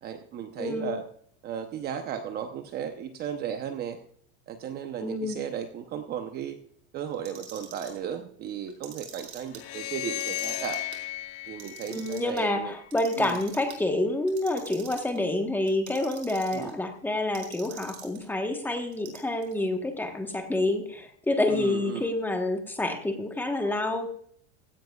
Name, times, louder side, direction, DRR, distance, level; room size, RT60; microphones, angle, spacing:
voice 1, 0.0-1.0 1.4-4.0 4.5-6.6 6.9-10.8 11.5-12.7 13.2-13.4 16.5-16.7 21.5-22.1, right 8 dB, 30° right, 7 dB, 0.9 m, -35 dB
voice 2, 0.6-0.9 5.0-5.4 11.9-24.1, left 2 dB, 5° left, 4 dB, 1.3 m, -28 dB
Clock, 7.1-8.0 8.7-9.6 10.1-11.0 11.4-12.4 12.9-13.8 14.3-15.2 15.7-16.7 17.3-18.2 18.9-19.5, right 9 dB, 75° right, 4.7 m, -45 dB
sound 1, 9.5-12.8, left 15 dB, 40° left, 1.1 m, -35 dB
16.0 x 16.0 x 2.4 m, 0.62 s
supercardioid pair, 155°, 34 cm